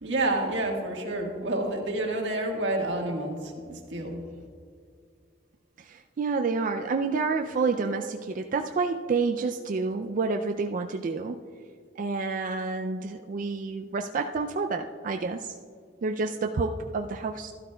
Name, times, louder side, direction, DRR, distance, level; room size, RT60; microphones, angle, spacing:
voice 1, 0.0-4.2, right 2 dB, 85° right, 1 dB, 1.5 m, -29 dB
voice 2, 5.8-11.4 12.0-15.6 16.0-17.5, right 4 dB, 50° right, 5 dB, 0.4 m, -29 dB
13.0 x 12.0 x 2.2 m, 2.1 s
head